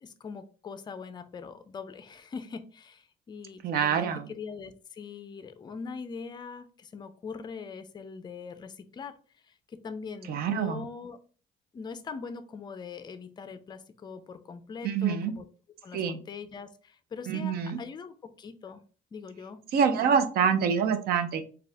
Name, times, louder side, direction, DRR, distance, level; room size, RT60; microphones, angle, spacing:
voice 1, 0.0-9.2 9.4-11.2 11.7-15.5 15.8-18.8 19.1-19.6 19.9-20.2, left 5 dB, 25° left, 11 dB, 0.4 m, -42 dB
voice 2, 3.6-4.2 10.3-10.8 14.8-15.3 15.9-16.2 17.3-17.8 19.7-21.5, right 7 dB, 65° right, 9 dB, 0.6 m, -26 dB
3.6 x 2.3 x 3.4 m, 0.39 s
cardioid pair, 110°, 17 cm